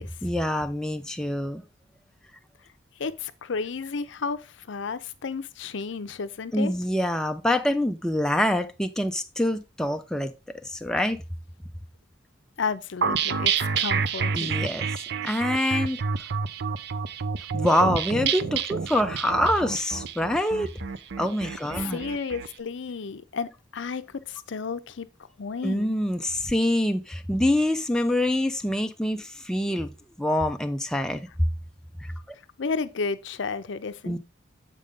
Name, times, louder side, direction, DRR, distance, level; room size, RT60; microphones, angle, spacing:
voice 1, 0.2-1.6 6.5-10.3 10.6-11.2 14.3-14.9 15.2-16.0 17.5-20.7 21.2-22.0 25.6-29.9 30.2-31.5 32.0-32.1 34.0-34.2, left 1 dB, 5° left, 0.4 m, -25 dB
voice 2, 3.0-6.7 12.6-14.7 21.8-25.1 25.4-25.9 32.6-34.2, left 5 dB, 70° left, 0.6 m, -32 dB
sound 1, 13.0-22.5, right 6 dB, 55° right, 0.4 m, -29 dB
7.5 x 5.1 x 3.6 m
head